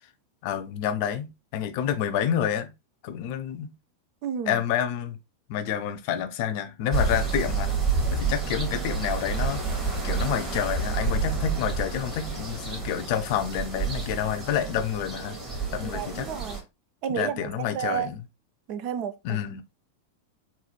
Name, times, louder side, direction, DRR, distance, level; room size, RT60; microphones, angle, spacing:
voice 1, 0.4-2.7 3.0-3.7 4.5-5.2 5.5-7.7 8.1-9.6 10.0-16.3 17.1-18.2 19.2-19.6, left 9 dB, 45° left, 0.5 m, -29 dB
voice 2, 4.2-4.6 15.8-16.6 17.0-18.1 18.7-19.4, right 8 dB, 45° right, 0.5 m, -31 dB
sound 1, 6.9-16.6, right 4 dB, 25° right, 1.8 m, -29 dB
3.8 x 2.6 x 3.1 m
figure-of-eight pair, 90°, 0 cm